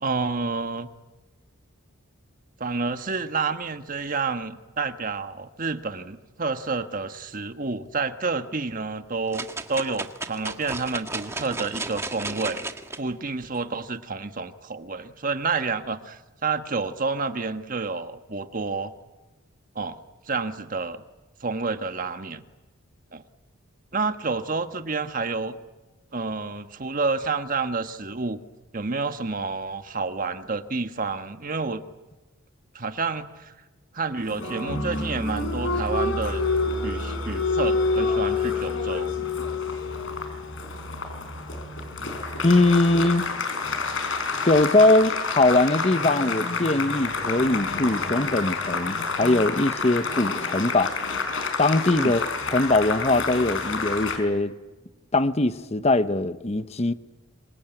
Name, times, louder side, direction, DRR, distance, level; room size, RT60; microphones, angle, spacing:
voice 1, 0.0-0.9 2.6-12.7 13.0-18.9 19.7-20.0 20.3-21.0 21.4-22.4 23.1-23.2 23.9-25.6 26.1-28.4 28.7-31.8 32.7-33.5 33.9-36.4 36.8-39.1 52.0-52.2, right 4 dB, 40° right, 1.4 m, -29 dB
sound 1, 9.3-13.0 13.5-13.6, right 2 dB, 15° right, 1.6 m, -34 dB
Applause, 34.2-54.2, left 3 dB, 65° left, 5.1 m, -28 dB
voice 2, 42.4-43.2 44.4-51.0 51.6-52.3 52.5-54.5 55.1-56.9, left 2 dB, 30° left, 0.9 m, -21 dB
27.0 x 24.0 x 9.1 m
head